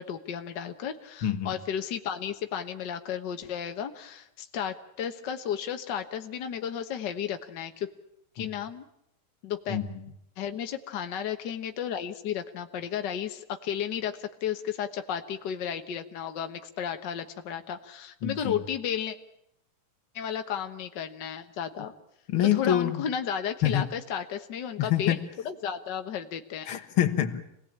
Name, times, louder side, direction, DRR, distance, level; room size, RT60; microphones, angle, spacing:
voice 1, 0.0-7.9 8.3-8.8 9.4-9.8 10.4-19.2 20.1-21.9 22.5-25.1 25.4-26.7, left 8 dB, 75° left, 7 dB, 0.9 m, -33 dB
voice 2, 1.2-1.6 8.4-8.5 9.7-10.0 18.2-18.6 22.3-23.0 23.6-23.9 24.8-25.2 26.7-27.4, left 10 dB, 55° left, 8 dB, 1.7 m, -26 dB
27.0 x 19.0 x 8.7 m, 0.78 s
omnidirectional pair, 3.8 m